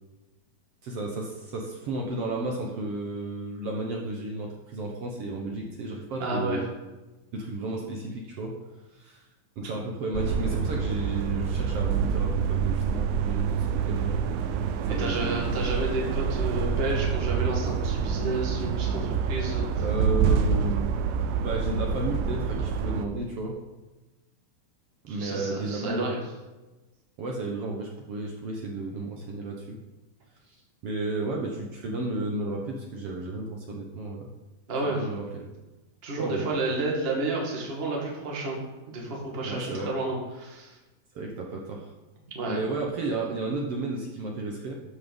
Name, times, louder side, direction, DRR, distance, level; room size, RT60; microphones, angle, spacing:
voice 1, 0.8-6.7 7.3-8.5 8.9-9.3 9.6-14.3 14.9-15.7 19.8-20.9 21.4-23.5 25.0-26.2 27.2-29.8 30.5-34.3 34.9-35.2 36.2-36.5 39.4-39.9 41.1-41.9 42.4-44.8, right 2 dB, 65° right, 0 dB, 1.5 m, -33 dB
voice 2, 6.2-6.6 14.9-19.7 25.1-26.2 34.7-35.1 36.0-38.6 38.9-40.8 42.3-42.6, right 2 dB, 25° right, -2 dB, 1.4 m, -31 dB
sound 1, 10.1-23.1, right 6 dB, 85° right, 2.5 m, -27 dB
12.0 x 5.8 x 5.3 m, 1.1 s
omnidirectional pair, 4.2 m